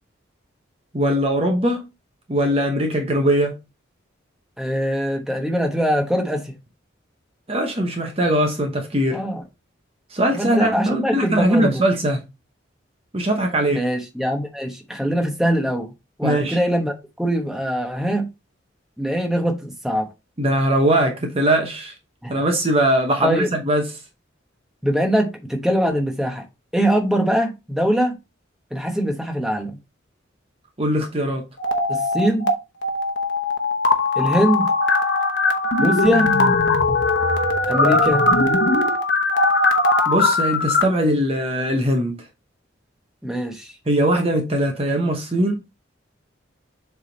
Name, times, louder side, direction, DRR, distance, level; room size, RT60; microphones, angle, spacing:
voice 1, 0.9-1.8 2.3-3.6 7.5-9.2 10.1-12.2 13.1-13.8 16.2-16.6 20.4-21.9 22.3-23.9 30.8-31.4 40.1-42.2 43.9-45.5, right 1 dB, 30° right, 0.9 m, -20 dB
voice 2, 4.6-6.5 9.1-9.4 10.3-11.8 13.7-15.9 16.2-18.3 19.0-20.1 22.2-22.3 23.2-23.5 24.8-26.4 26.7-28.2 28.7-29.8 31.9-32.5 34.2-34.7 35.8-36.3 37.7-38.3 43.2-43.7, equal, ahead, 1.1 m, -22 dB
sound 1, 31.6-32.5 32.8-40.8, left 2 dB, 55° left, 1.0 m, -19 dB
7.3 x 3.5 x 4.0 m
head